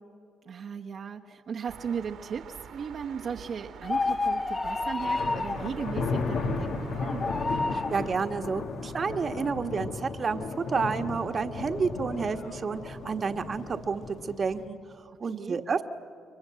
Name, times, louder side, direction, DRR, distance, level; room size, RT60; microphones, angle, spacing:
voice 1, 0.4-7.3 15.2-15.6, right 6 dB, 60° right, 1 dB, 1.1 m, -37 dB
sound 1, 1.7-8.2, right 8 dB, 75° right, 1.9 m, -45 dB
sound 2, 3.8-5.7 7.0-8.0, left 3 dB, 30° left, 0.9 m, -29 dB
sound 3, 5.0-14.6, left 4 dB, 70° left, 2.1 m, -35 dB
voice 2, 7.7-10.4 10.7-15.8, right 5 dB, 40° right, 8 dB, 1.4 m, -30 dB
29.0 x 23.5 x 7.6 m, 2.4 s
cardioid pair, 90°, 0 cm